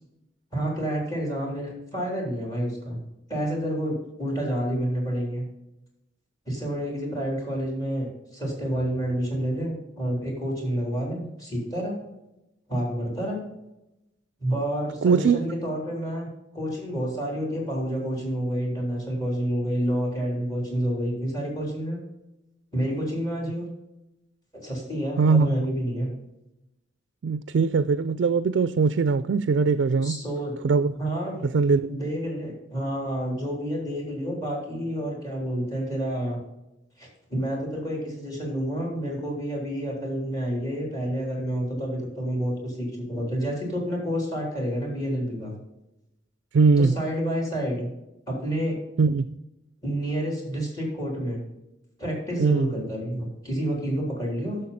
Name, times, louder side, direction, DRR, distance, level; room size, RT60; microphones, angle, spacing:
voice 1, 0.5-3.0 3.3-5.5 6.5-12.0 12.7-13.4 14.4-16.3 16.5-22.0 22.7-23.7 24.6-26.1 30.0-30.5 31.0-31.5 31.9-36.4 37.0-45.5 46.8-47.9 48.3-48.8 49.8-51.4 52.0-54.6, equal, 20° left, -2 dB, 3.6 m, -29 dB
voice 2, 15.0-15.4 25.2-25.6 27.2-30.2 30.6-30.9 31.5-31.9 46.5-46.9 49.0-49.3 52.4-52.7, right 4 dB, 70° right, 14 dB, 0.4 m, -21 dB
12.0 x 6.8 x 4.2 m, 0.93 s
head